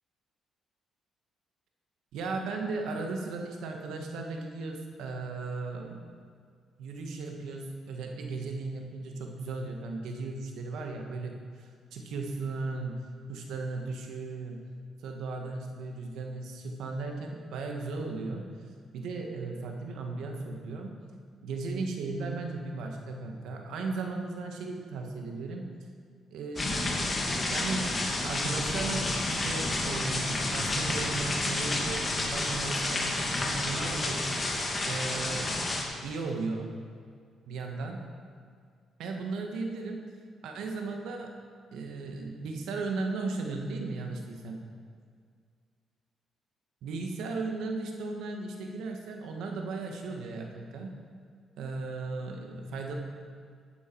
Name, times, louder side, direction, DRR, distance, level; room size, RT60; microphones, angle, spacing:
voice 1, 2.1-6.0 6.8-14.6 15.0-18.5 18.9-21.0 21.4-25.7 26.3-26.9 27.5-27.9 28.2-34.2 34.8-35.6 36.0-36.7 37.5-38.0 39.0-40.0 40.4-41.3 41.7-44.6 46.8-51.0 51.6-52.9, right 3 dB, 80° right, 2 dB, 1.4 m, -36 dB
sound 1, 26.6-35.8, left 2 dB, 30° left, 1.9 m, -30 dB
12.0 x 9.3 x 4.6 m, 2.1 s
cardioid pair, 90°, 0 cm